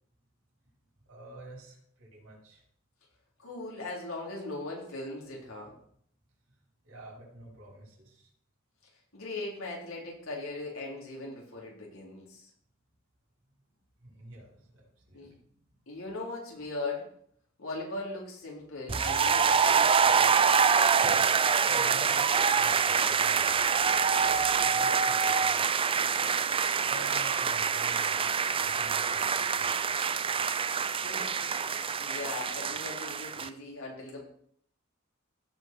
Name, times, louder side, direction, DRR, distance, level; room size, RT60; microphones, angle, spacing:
voice 1, 1.1-2.6 6.8-8.3 14.0-15.4 21.6-26.0 26.9-28.3 28.6-29.8, right 1 dB, 90° right, -3 dB, 5.5 m, -49 dB
voice 2, 3.4-5.7 9.1-12.5 15.1-15.3 15.9-17.1 17.6-20.4 31.0-34.2, left 2 dB, 85° left, -3 dB, 4.1 m, -39 dB
sound 1, 18.9-33.5, right 6 dB, 25° right, 0.4 m, -26 dB
16.0 x 5.5 x 4.7 m, 0.65 s
head